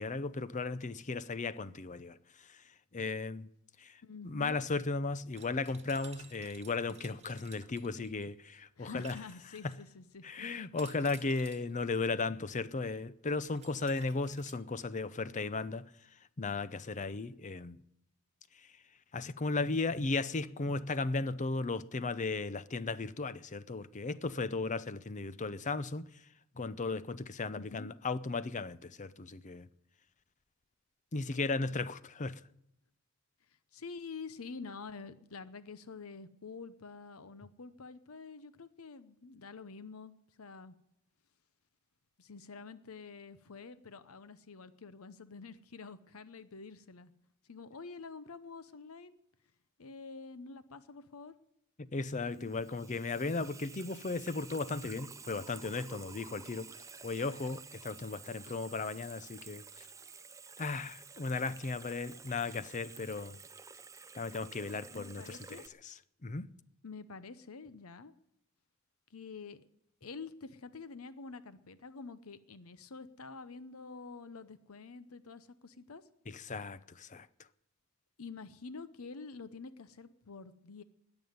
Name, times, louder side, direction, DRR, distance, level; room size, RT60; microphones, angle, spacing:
voice 1, 0.0-2.2 2.9-3.5 3.8-3.9 4.2-9.1 9.6-9.7 10.2-15.8 16.4-17.8 19.1-26.1 26.6-29.7 31.1-32.4 51.8-56.7 57.0-59.6 60.6-63.4 64.2-65.4 65.8-65.9 66.2-66.5 76.3-77.3, left 3 dB, 35° left, 0.6 m, -36 dB
voice 2, 4.0-4.5 8.8-10.7 27.6-27.9 33.7-40.7 42.2-47.1 47.5-49.2 49.8-51.3 52.3-52.6 64.7-65.6 66.8-68.1 69.1-69.6 70.0-76.0 78.2-80.8, left 4 dB, 85° left, 0.8 m, -48 dB
sound 1, 5.4-8.4 9.0-9.9 10.8-11.8 13.3-14.5, right 6 dB, 30° right, 2.1 m, -56 dB
Water tap faucet / Sink (filling or washing), 52.0-65.7, right 5 dB, 15° right, 0.5 m, -52 dB
20.0 x 7.1 x 9.4 m
head